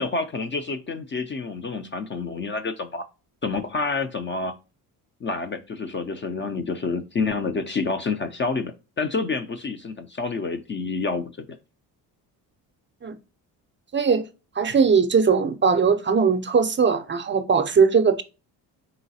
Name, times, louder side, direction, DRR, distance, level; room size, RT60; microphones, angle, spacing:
voice 1, 0.0-3.1 3.4-4.5 5.2-11.5, left 4 dB, 30° left, 0.4 m, -28 dB
voice 2, 13.9-14.2 14.6-18.2, right 5 dB, 25° right, 0.5 m, -20 dB
3.9 x 3.7 x 2.7 m
supercardioid pair, 70°, 43 cm